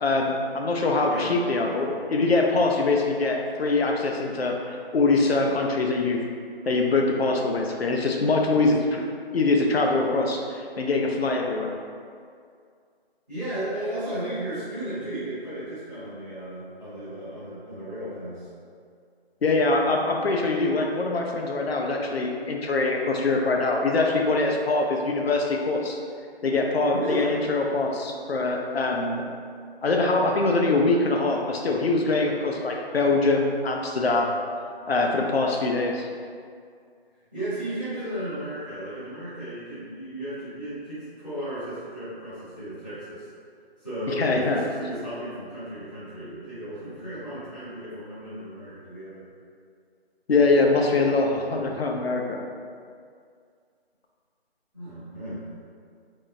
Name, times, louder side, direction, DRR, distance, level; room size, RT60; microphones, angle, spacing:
voice 1, 0.0-6.2 6.6-9.0 9.3-11.7 19.4-26.0 26.4-29.3 29.8-34.3 34.9-36.1 44.1-44.6 50.3-52.4, left 3 dB, 75° left, 1 dB, 0.7 m, -23 dB
voice 2, 13.3-18.5 26.9-27.4 37.3-43.3 43.8-49.2 54.7-55.4, right 1 dB, ahead, -22 dB, 1.1 m, -34 dB
3.6 x 3.5 x 2.6 m, 2.2 s
figure-of-eight pair, 170°, 31 cm